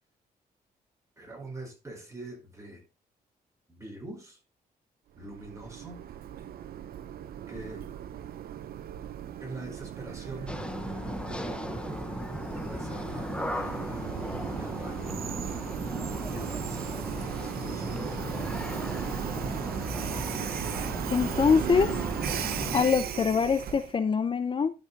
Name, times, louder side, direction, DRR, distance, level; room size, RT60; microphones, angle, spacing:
voice 1, 1.2-2.8 3.7-4.4 5.2-6.0 7.5-7.8 9.4-10.5 11.3-12.0 12.5-14.1 14.6-15.2 16.3-18.6, right 1 dB, 20° right, 4.8 m, -44 dB
Train, 5.2-24.0, right 10 dB, 75° right, 0.9 m, -36 dB
residental street amb, 10.5-22.8, left 1 dB, 5° left, 0.9 m, -36 dB
voice 2, 21.1-22.0 22.7-24.7, left 6 dB, 30° left, 0.6 m, -24 dB
12.0 x 5.5 x 4.1 m
cardioid pair, 105°, 16 cm